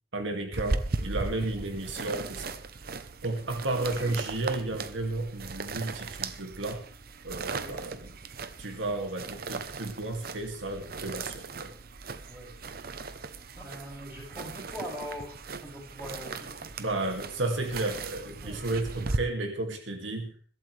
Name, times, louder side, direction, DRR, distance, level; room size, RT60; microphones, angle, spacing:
voice 1, 0.1-2.6 3.2-6.9 7.2-8.1 8.6-11.7 16.8-20.3, right 2 dB, 85° right, 4 dB, 2.4 m, -33 dB
sound 1, 0.5-19.2, right 3 dB, 55° right, 0.9 m, -38 dB
voice 2, 1.5-1.8 3.8-4.2 7.6-7.8 11.7-11.8 12.3-12.5 13.6-15.4 15.6-16.7 18.4-18.7, equal, 10° right, -3 dB, 6.7 m, -42 dB
21.5 x 12.5 x 3.4 m, 0.43 s
head